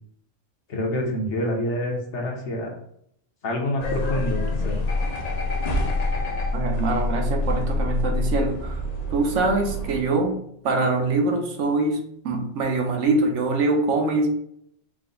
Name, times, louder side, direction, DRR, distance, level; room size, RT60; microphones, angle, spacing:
voice 1, 0.7-2.7 3.4-4.4 4.6-4.8, left 1 dB, 65° left, 0 dB, 1.2 m, -27 dB
sound 1, 3.8-10.0, left 2 dB, 45° left, 0.6 m, -26 dB
voice 2, 6.5-8.8 9.1-10.3 10.6-12.0 12.2-14.3, right 3 dB, 70° right, 3 dB, 1.1 m, -23 dB
4.8 x 2.1 x 3.8 m, 0.71 s
omnidirectional pair, 1.3 m